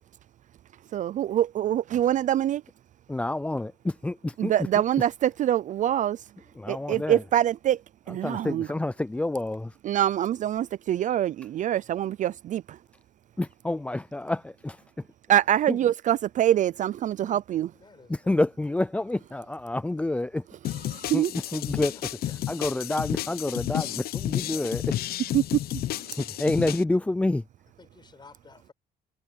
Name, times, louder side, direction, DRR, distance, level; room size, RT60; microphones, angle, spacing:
voice 1, 0.9-2.6 4.4-6.2 6.7-7.8 8.1-8.7 9.8-12.6 15.3-17.7 20.9-21.3 25.3-25.4, right 11 dB, 50° right, 0.4 m, -24 dB
voice 2, 3.1-4.5 6.6-7.2 8.2-9.7 13.4-14.8 15.7-15.8 17.2-17.3 18.1-20.4 21.1-22.1 22.5-23.9 24.2-24.9 26.2-27.4, left 2 dB, 5° left, 0.4 m, -28 dB
voice 3, 17.7-18.4 21.9-22.0 27.8-28.7, left 4 dB, 25° left, 7.7 m, -53 dB
sound 1, 20.6-26.8, left 13 dB, 65° left, 0.8 m, -31 dB
cardioid pair, 110°, 17 cm